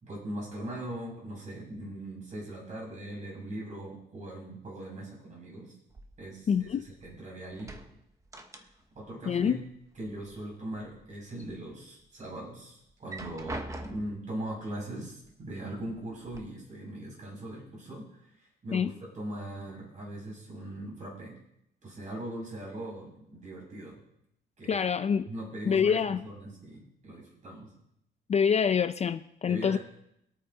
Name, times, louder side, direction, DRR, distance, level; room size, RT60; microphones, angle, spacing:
voice 1, 0.0-5.7 6.2-6.5 6.7-7.7 8.9-9.6 10.0-18.0 18.4-21.3 21.8-24.0 24.6-24.8 25.3-27.7 29.5-29.8, right 1 dB, 40° right, -4 dB, 6.2 m, -40 dB
sound 1, 5.9-7.2 7.5-9.1 9.4-10.4 10.8-11.5 12.0-12.1 12.9-14.3 15.2-15.3 15.8-16.4, right 1 dB, 15° right, 1.0 m, -43 dB
voice 2, 6.5-6.8 9.3-9.6 18.7-18.9 24.7-25.3 25.7-26.2 28.3-29.8, left 7 dB, 35° left, 10 dB, 0.4 m, -26 dB
25.5 x 9.0 x 2.8 m, 0.79 s
cardioid pair, 140°, 19 cm